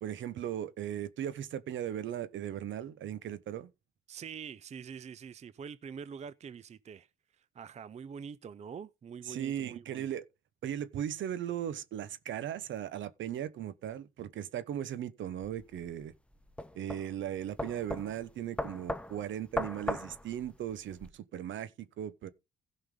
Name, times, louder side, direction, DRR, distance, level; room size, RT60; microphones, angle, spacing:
voice 1, 0.0-3.7 9.3-10.2 10.6-16.1 16.7-22.3, right 10 dB, 70° right, 1.0 m, -37 dB
voice 2, 4.1-7.1 7.4-10.1, right 7 dB, 35° right, 0.5 m, -45 dB
sound 1, 15.4-21.1, left 1 dB, 5° left, 0.8 m, -39 dB
16.0 x 5.5 x 3.8 m
cardioid pair, 90°, 20 cm